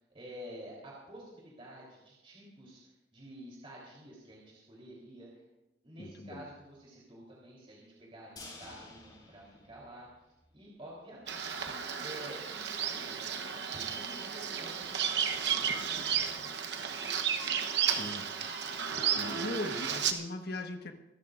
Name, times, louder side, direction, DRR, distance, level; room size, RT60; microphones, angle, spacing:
voice 1, 0.1-5.4 5.8-10.1 10.5-11.6 12.0-13.2 13.7-17.1, equal, 30° right, -4 dB, 3.7 m, -50 dB
voice 2, 6.0-6.5 17.8-18.3 19.0-20.9, left 2 dB, 60° left, 5 dB, 1.5 m, -39 dB
sound 1, 8.4-10.5 10.8-10.9 11.3-11.4, left 2 dB, 25° left, 4.8 m, -52 dB
Bird vocalization bird call bird song, 11.3-20.1, right 8 dB, 65° right, 1.0 m, -33 dB
25.0 x 13.5 x 2.6 m, 0.97 s
head